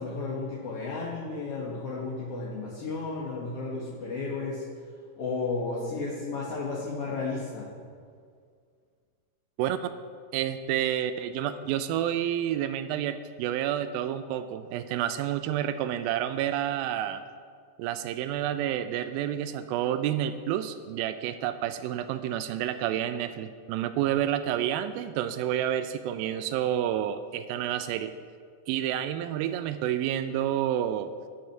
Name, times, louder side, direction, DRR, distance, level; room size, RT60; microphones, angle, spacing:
voice 1, 0.0-4.7 5.2-7.7, left 3 dB, 55° left, -6 dB, 1.8 m, -33 dB
voice 2, 9.6-9.9 10.3-17.2 17.8-28.1 28.7-31.1, right 11 dB, 90° right, 9 dB, 2.1 m, -29 dB
19.0 x 6.4 x 5.9 m, 2.1 s
omnidirectional pair, 4.7 m